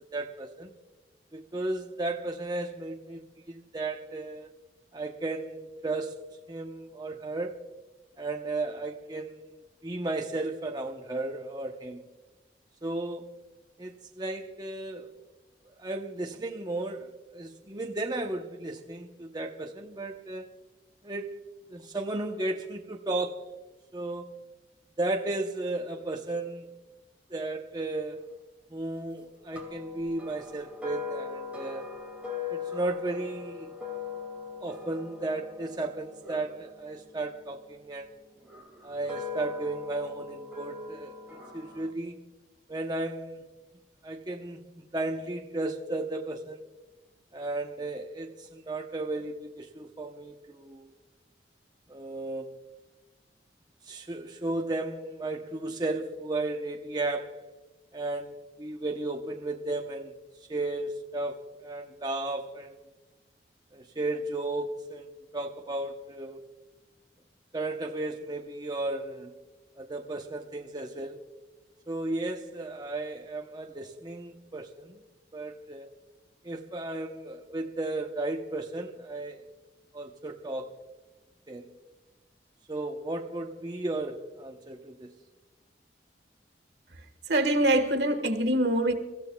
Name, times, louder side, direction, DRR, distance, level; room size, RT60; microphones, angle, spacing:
voice 1, 0.1-0.7 1.3-3.2 3.5-4.5 4.9-6.2 6.5-7.6 8.2-9.5 9.8-12.0 12.8-13.3 13.8-15.1 15.8-20.5 21.0-21.4 21.7-23.5 23.9-24.3 25.0-26.7 27.3-28.3 28.7-31.9 32.5-33.7 34.6-38.1 38.8-42.2 42.7-43.4 44.0-46.6 47.3-50.9 51.9-52.6 53.9-57.4 57.9-60.1 60.5-62.7 63.7-66.4 67.5-69.3 69.8-71.2 71.9-74.9 75.3-75.9 76.4-79.4 79.9-80.7 81.5-81.7 82.7-85.1, right 2 dB, 25° right, 0.8 m, -34 dB
sound 1, 29.5-37.7 38.4-41.9, left 6 dB, 10° right, 2.4 m, -40 dB
voice 2, 87.3-88.9, right 1 dB, 70° right, 1.6 m, -24 dB
29.5 x 15.0 x 2.3 m
head